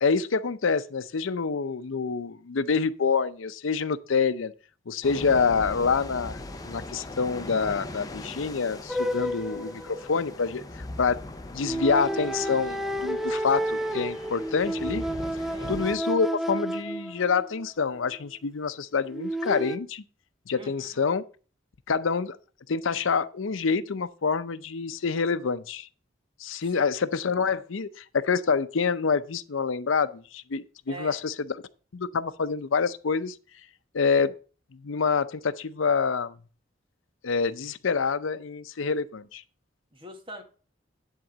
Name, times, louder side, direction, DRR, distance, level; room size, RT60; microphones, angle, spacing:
voice 1, 0.0-4.5 4.9-6.4 6.7-11.2 11.5-15.0 15.7-20.0 20.5-21.2 21.9-22.4 22.7-25.9 26.4-31.6 31.9-33.4 33.9-34.3 34.7-36.4 37.2-39.4, left 5 dB, 85° left, 0.6 m, -27 dB
sound 1, 5.0-16.0, left 2 dB, 20° left, 0.8 m, -40 dB
sound 2, 8.9-10.5 11.6-17.7 19.1-19.8, right 1 dB, ahead, 0.4 m, -31 dB
voice 2, 15.5-15.8 20.5-21.0 26.6-26.9 30.9-31.2 39.9-40.4, equal, 25° right, 1.7 m, -43 dB
11.0 x 3.7 x 7.3 m
head